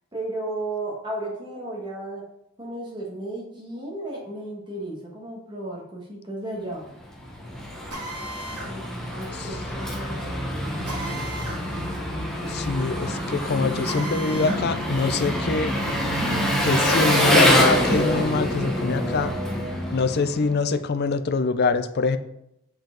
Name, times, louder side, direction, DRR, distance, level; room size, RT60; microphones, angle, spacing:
voice 1, 0.1-2.3 2.6-6.9 8.7-11.0, right 1 dB, 20° right, -3 dB, 1.6 m, -34 dB
Engine, 7.0-20.6, left 1 dB, ahead, 1.0 m, -25 dB
Drill, 7.9-8.7 10.9-11.6 13.8-14.6 15.0-15.1 16.9-17.6, right 2 dB, 90° right, 2.1 m, -35 dB
voice 2, 12.5-15.8 16.6-19.3 19.9-22.2, left 4 dB, 45° left, 11 dB, 0.5 m, -25 dB
7.6 x 4.7 x 3.9 m, 0.81 s
head